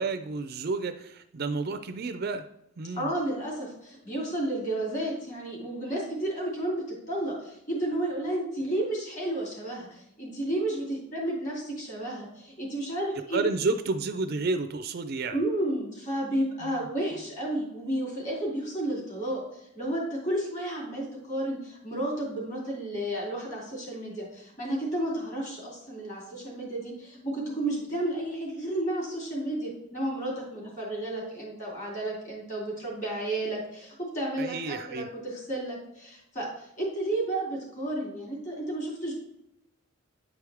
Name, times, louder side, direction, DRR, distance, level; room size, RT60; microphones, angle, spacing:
voice 1, 0.0-2.4 2.8-3.1 13.3-15.4 16.6-16.9 34.4-35.1, right 3 dB, 45° right, 8 dB, 0.4 m, -31 dB
voice 2, 3.0-13.4 15.3-39.1, right 1 dB, 35° left, -3 dB, 2.9 m, -32 dB
9.5 x 4.8 x 3.5 m, 0.81 s
head